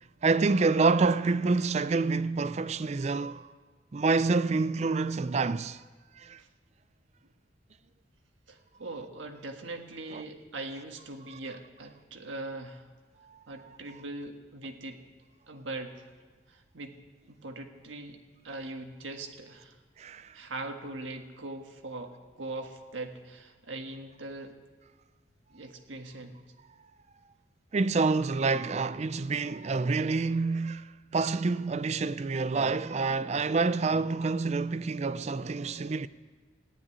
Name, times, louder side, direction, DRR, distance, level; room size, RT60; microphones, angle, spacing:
voice 1, 0.2-3.5 3.9-5.8 6.2-6.4 10.1-10.2 13.3-13.4 20.0-20.4 27.7-36.1, right 4 dB, 35° right, 0.4 m, -27 dB
voice 2, 8.5-12.9 13.5-15.0 15.5-16.0 16.5-17.0 17.3-19.8 20.3-24.6 25.5-26.4, right 2 dB, 80° right, 1.6 m, -41 dB
14.5 x 9.9 x 9.7 m
head